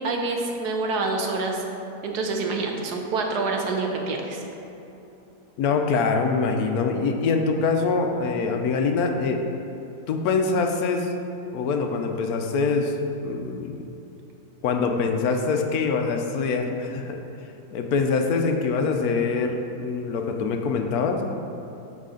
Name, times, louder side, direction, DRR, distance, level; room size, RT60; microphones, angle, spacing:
voice 1, 0.0-1.6 2.0-4.4, right 3 dB, 75° right, 2 dB, 1.4 m, -27 dB
voice 2, 5.6-9.4 10.1-11.1 11.5-13.0 13.2-13.7 14.6-17.2 17.7-21.3, left 4 dB, 75° left, 4 dB, 1.0 m, -24 dB
12.0 x 4.1 x 3.8 m, 2.9 s
omnidirectional pair, 1.7 m